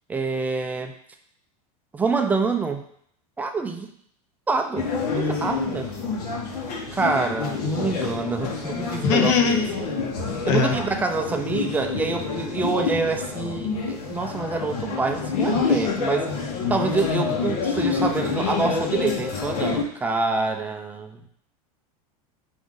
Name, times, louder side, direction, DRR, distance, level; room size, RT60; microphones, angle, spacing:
voice 1, 0.1-1.0 1.9-2.8 3.4-3.9 4.5-4.9 5.1-5.9 6.9-9.6 10.5-16.3 16.7-21.2, right 4 dB, 10° right, 5 dB, 0.3 m, -26 dB
sound 1, 4.8-19.8, left 4 dB, 80° left, 1.0 m, -27 dB
voice 2, 9.0-9.6 10.5-10.8, left 6 dB, 55° left, 4 dB, 0.8 m, -19 dB
4.7 x 2.6 x 3.7 m, 0.67 s
supercardioid pair, 130°, 20 cm